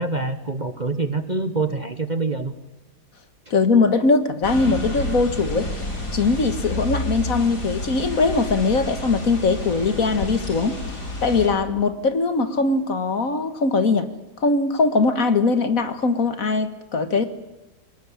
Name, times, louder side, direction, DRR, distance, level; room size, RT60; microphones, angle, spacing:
voice 1, 0.0-2.5, right 3 dB, 30° right, 9 dB, 1.2 m, -25 dB
voice 2, 3.5-5.7 6.1-10.8 11.2-14.1 14.4-17.2, left 3 dB, 55° left, 10 dB, 2.0 m, -21 dB
sound 1, 4.4-11.5, left 1 dB, 75° left, 5.5 m, -30 dB
23.5 x 20.0 x 10.0 m, 1.0 s
omnidirectional pair, 1.8 m